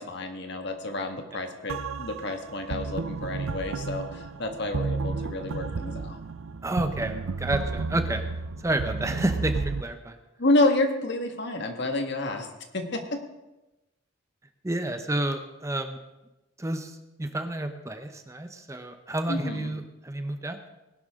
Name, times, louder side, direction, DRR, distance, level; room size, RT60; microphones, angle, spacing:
voice 1, 0.0-6.2 10.4-12.5 12.7-13.2 19.3-19.7, left 2 dB, 55° left, 5 dB, 1.6 m, -29 dB
sound 1, 1.7-9.8, right 4 dB, 75° right, 0.5 m, -32 dB
voice 2, 6.6-8.3 8.6-10.2 14.6-16.0 16.6-20.7, right 1 dB, 15° right, 7 dB, 0.8 m, -30 dB
19.5 x 11.5 x 3.7 m, 1.0 s
head